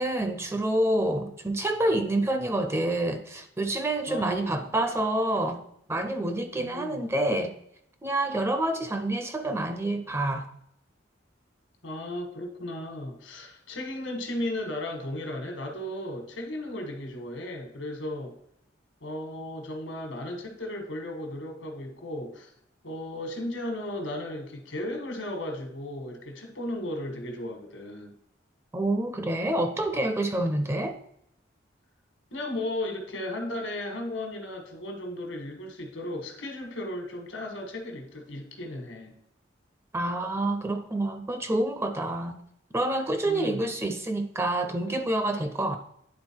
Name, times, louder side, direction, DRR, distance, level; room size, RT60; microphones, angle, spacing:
voice 1, 0.0-5.6 5.9-7.5 8.0-10.5 28.7-31.0 39.9-42.4 42.7-45.8, right 1 dB, 15° right, 7 dB, 0.5 m, -27 dB
voice 2, 4.1-4.6 6.6-7.0 11.8-18.3 19.0-22.5 22.8-28.1 32.3-39.2 43.2-43.8, left 1 dB, 80° left, 4 dB, 1.5 m, -35 dB
9.6 x 3.9 x 4.4 m, 0.74 s
head